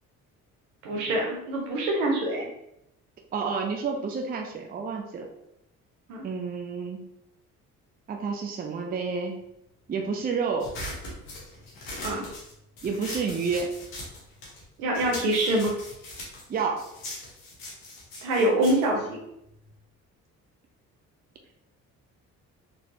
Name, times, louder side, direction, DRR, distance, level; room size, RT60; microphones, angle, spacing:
voice 1, 0.8-2.5 6.1-6.2 12.0-12.2 14.8-15.7 18.2-19.2, right 1 dB, 65° right, 0 dB, 1.0 m, -25 dB
voice 2, 3.3-5.3 6.2-7.0 8.1-9.4 9.9-10.7 12.8-13.7 16.5-16.8, right 5 dB, 20° right, 2 dB, 0.5 m, -29 dB
sound 1, 10.6-14.7 14.9-19.8, left 1 dB, 75° left, 1.1 m, -40 dB
4.0 x 3.3 x 2.7 m, 0.82 s
figure-of-eight pair, 45°, 44 cm